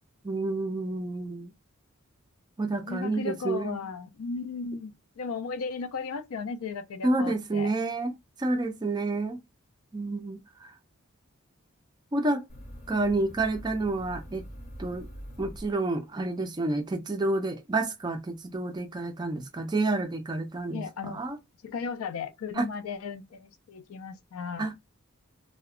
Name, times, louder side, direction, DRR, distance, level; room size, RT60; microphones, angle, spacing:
voice 1, 0.2-1.5 2.6-3.8 7.0-9.4 9.9-10.7 12.1-12.4 12.9-14.4 14.8-15.1 15.4-21.4 22.6-22.7 24.6-24.8, right 2 dB, 20° right, 0.3 m, -29 dB
voice 2, 2.9-7.7 20.7-21.2 21.6-24.7, left 5 dB, 80° left, 0.4 m, -36 dB
sound 1, 12.5-16.2, equal, 40° left, 0.6 m, -44 dB
2.7 x 2.1 x 2.3 m
head